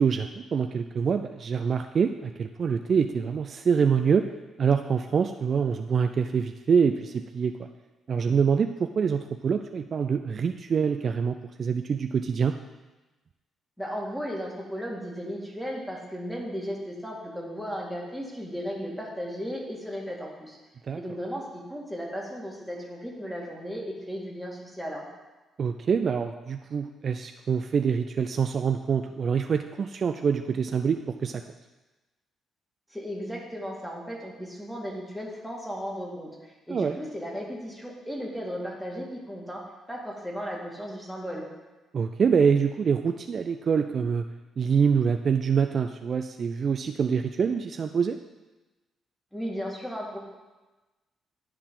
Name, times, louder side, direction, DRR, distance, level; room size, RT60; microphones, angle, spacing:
voice 1, 0.0-4.3 4.6-7.7 8.1-12.6 20.9-21.0 25.6-31.4 36.7-37.0 41.9-44.2 44.6-48.2, right 6 dB, 50° right, 6 dB, 0.3 m, -25 dB
voice 2, 13.8-20.6 21.0-25.0 32.9-39.6 39.9-41.5 49.3-50.2, equal, ahead, -2 dB, 2.0 m, -35 dB
11.5 x 4.6 x 3.7 m, 1.1 s
cardioid pair, 90°, 0 cm